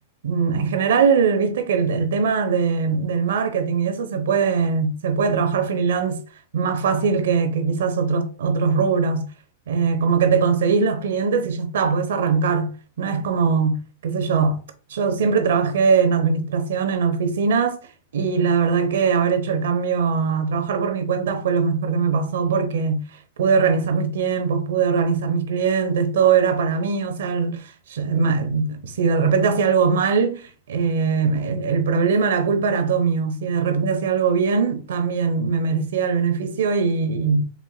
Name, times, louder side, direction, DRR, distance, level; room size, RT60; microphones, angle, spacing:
voice 1, 0.2-6.2 6.5-9.3 9.7-12.7 13.0-14.6 14.9-17.8 18.1-23.0 23.4-37.5, right 5 dB, 85° right, 0.8 m, -21 dB
4.7 x 3.7 x 2.2 m
supercardioid pair, 140°, 0 cm